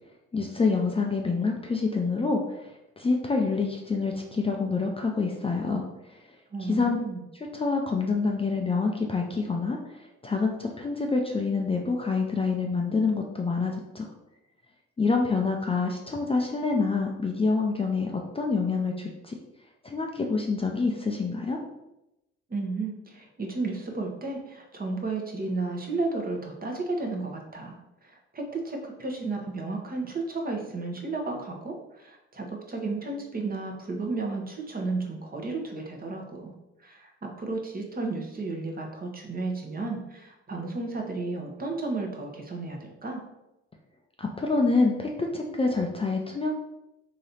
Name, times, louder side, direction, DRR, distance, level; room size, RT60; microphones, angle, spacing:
voice 1, 0.3-5.9 6.6-7.0 7.5-14.1 15.0-19.3 19.8-21.6 44.2-46.5, left 4 dB, 20° left, 1 dB, 0.5 m, -27 dB
voice 2, 6.5-7.2 22.5-27.8 28.0-36.5 36.8-43.2, right 3 dB, 30° right, 1 dB, 1.0 m, -33 dB
3.1 x 2.8 x 4.0 m, 0.91 s
hypercardioid pair, 55°, 30 cm